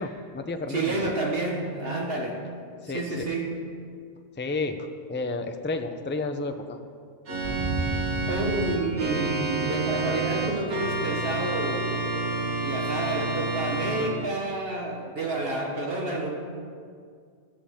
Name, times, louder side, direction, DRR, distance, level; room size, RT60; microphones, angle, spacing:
voice 1, 0.0-1.0 2.8-3.3 4.4-6.8, left 3 dB, 15° left, 6 dB, 0.5 m, -31 dB
voice 2, 0.7-2.4 2.9-3.6 8.3-16.3, right 2 dB, 55° right, 0 dB, 1.6 m, -30 dB
Organ, 7.3-14.1, right 3 dB, 75° right, 1.8 m, -29 dB
sound 1, 7.4-10.2, right 1 dB, 15° right, 2.5 m, -33 dB
15.5 x 13.5 x 3.7 m, 2.2 s
omnidirectional pair, 1.2 m